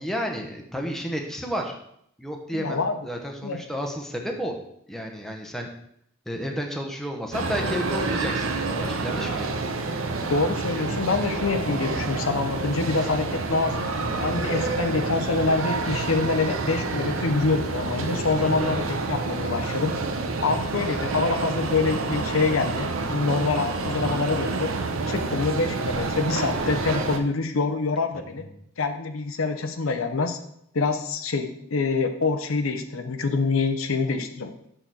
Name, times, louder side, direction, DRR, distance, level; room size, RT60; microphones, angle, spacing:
voice 1, 0.0-1.7 2.2-4.5 4.9-5.7 6.3-9.5 18.4-18.8 25.1-25.5 28.1-28.4, equal, ahead, 1 dB, 0.9 m, -32 dB
voice 2, 2.5-2.9 3.4-3.6 10.3-13.9 14.2-20.0 20.4-24.7 25.1-28.5 28.8-30.4 30.7-34.5, left 3 dB, 90° left, 7 dB, 0.7 m, -25 dB
sound 1, 7.3-27.2, right 3 dB, 80° right, 0.7 m, -28 dB
6.5 x 3.9 x 6.2 m, 0.71 s
head